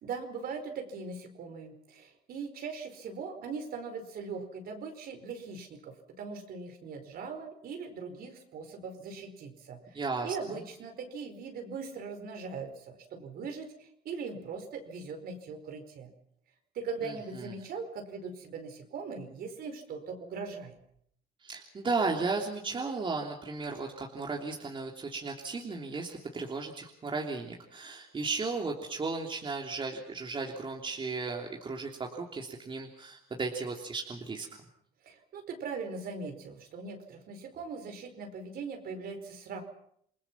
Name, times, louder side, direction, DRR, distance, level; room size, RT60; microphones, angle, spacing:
voice 1, 0.0-16.1 16.7-20.7 35.0-39.6, right 5 dB, 65° right, 6 dB, 4.8 m, -40 dB
voice 2, 9.9-10.3 17.0-17.5 21.4-34.5, right 4 dB, 30° right, 0 dB, 3.2 m, -35 dB
28.5 x 20.5 x 6.0 m, 0.69 s
cardioid pair, 110°, 17 cm